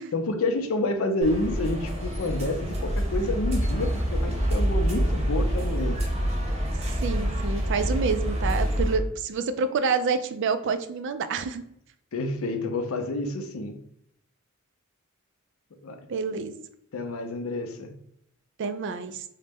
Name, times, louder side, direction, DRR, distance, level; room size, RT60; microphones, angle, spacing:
voice 1, 0.1-6.0 12.1-13.8 15.8-16.1 16.9-17.9, left 2 dB, 70° left, 6 dB, 0.5 m, -29 dB
sound 1, 1.2-9.0, equal, 30° right, 0.7 m, -26 dB
voice 2, 7.0-11.6 16.1-16.6 18.6-19.2, right 5 dB, 55° right, 10 dB, 0.3 m, -28 dB
3.9 x 2.1 x 3.4 m, 0.73 s
head